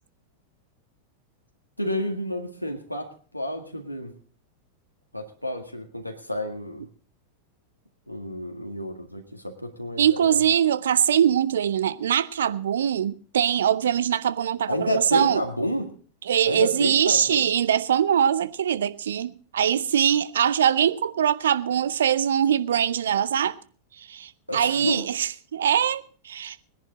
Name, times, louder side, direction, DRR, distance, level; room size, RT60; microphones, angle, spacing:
voice 1, 1.8-4.1 5.1-6.8 8.1-10.1 14.7-15.9 16.5-17.4 24.5-25.0, left 1 dB, 90° left, 1.8 m, -30 dB
voice 2, 10.0-15.4 16.3-23.6 24.0-26.6, right 9 dB, 65° right, 0.6 m, -22 dB
20.5 x 10.5 x 3.9 m
figure-of-eight pair, 90°, 0 cm